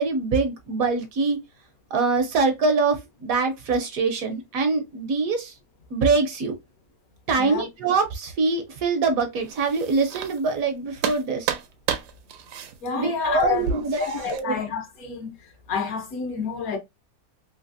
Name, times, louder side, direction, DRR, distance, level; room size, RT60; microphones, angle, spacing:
voice 1, 0.0-1.4 1.9-5.5 5.9-6.5 7.3-11.5 13.0-14.6, right 4 dB, 65° right, 1.0 m, -24 dB
voice 2, 7.4-7.7 12.8-15.3 15.7-16.8, left 5 dB, 65° left, 1.2 m, -28 dB
sound 1, 9.3-10.7 11.0-14.4, right 8 dB, 90° right, 1.2 m, -32 dB
3.2 x 2.8 x 2.5 m
omnidirectional pair, 1.7 m